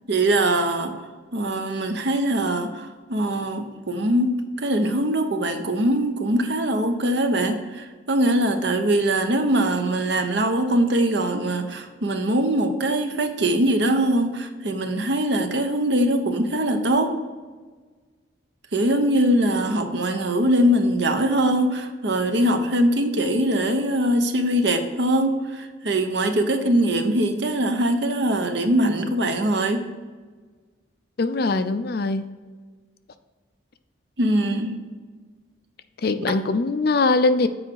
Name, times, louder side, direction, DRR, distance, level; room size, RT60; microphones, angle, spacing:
voice 1, 0.1-0.9 1.3-17.1 18.7-29.8 34.2-34.8, right 1 dB, 60° right, 6 dB, 0.9 m, -22 dB
voice 2, 31.2-32.2 36.0-37.5, left 3 dB, 50° left, 11 dB, 0.4 m, -21 dB
8.0 x 5.0 x 4.6 m, 1.4 s
head